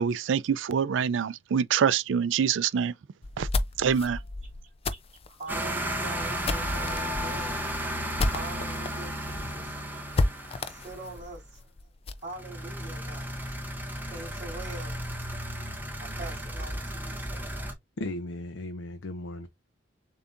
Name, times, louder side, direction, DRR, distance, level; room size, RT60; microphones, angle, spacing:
voice 1, 0.0-2.9 3.4-3.5 3.8-4.2, right 7 dB, 70° right, 0.4 m, -25 dB
sound 1, 3.2-8.9 9.3-9.4 9.6-9.7 10.1-12.3, left 2 dB, 30° left, 0.4 m, -31 dB
voice 2, 5.3-7.6 8.2-9.8 10.6-11.7 12.2-13.4 14.0-15.3 16.0-17.5, right 3 dB, 40° right, 2.8 m, -43 dB
sound 2, 5.5-11.4 12.3-17.7, equal, 10° right, 1.0 m, -34 dB
voice 3, 18.0-19.5, left 1 dB, 75° left, 0.6 m, -36 dB
6.9 x 2.7 x 2.5 m
head